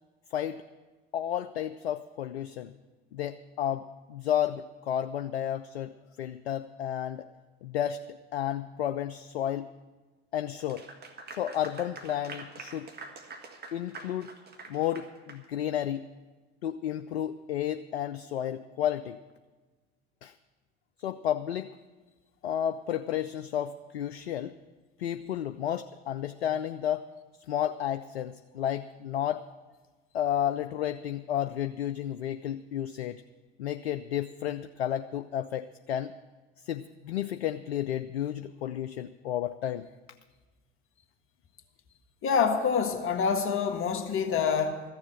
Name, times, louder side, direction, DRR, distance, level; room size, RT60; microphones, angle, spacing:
voice 1, 0.3-0.6 1.1-2.7 3.1-5.9 6.2-7.3 7.6-8.0 8.3-9.7 10.3-10.8 11.3-12.9 13.7-14.3 14.7-16.0 16.6-19.2 20.2-20.3 21.0-21.7 22.4-24.5 25.0-27.1 27.5-29.4 30.1-33.2 33.6-36.1 36.6-39.9, left 10 dB, 85° left, 11 dB, 0.5 m, -32 dB
Clapping / Applause, 10.6-15.4, right 3 dB, 30° right, 1.7 m, -45 dB
voice 2, 42.2-44.8, left 6 dB, 40° left, 6 dB, 1.5 m, -26 dB
14.0 x 7.3 x 9.0 m, 1.3 s
hypercardioid pair, 65°, 31 cm